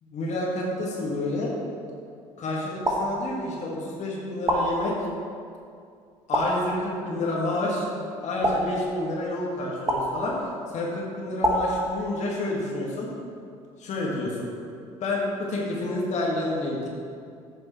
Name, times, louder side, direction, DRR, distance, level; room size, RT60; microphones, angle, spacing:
voice 1, 0.1-1.5 2.4-5.0 6.3-7.9 8.2-13.1 13.8-14.5 15.0-16.9, left 2 dB, 40° left, -3 dB, 2.1 m, -29 dB
sound 1, 2.8-3.8 4.5-5.3 6.3-7.2 8.4-9.3 9.9-10.7 11.4-12.4, equal, 15° right, 1.7 m, -28 dB
15.0 x 7.5 x 3.3 m, 2.4 s
figure-of-eight pair, 60°, 18 cm